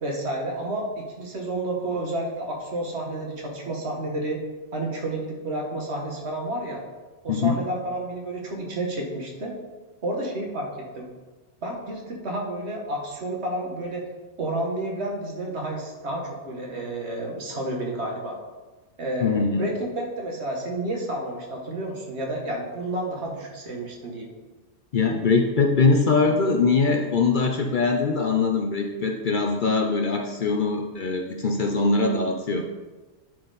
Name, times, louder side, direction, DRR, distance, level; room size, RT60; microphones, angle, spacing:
voice 1, 0.0-4.4 4.7-6.8 7.2-9.5 10.0-10.7 10.9-11.1 11.6-14.0 14.4-18.4 19.0-24.3, right 1 dB, 65° right, 0 dB, 1.6 m, -30 dB
voice 2, 19.2-19.6 24.9-32.7, left 4 dB, 50° left, 2 dB, 0.7 m, -22 dB
10.5 x 4.3 x 4.0 m, 1.3 s
omnidirectional pair, 1.2 m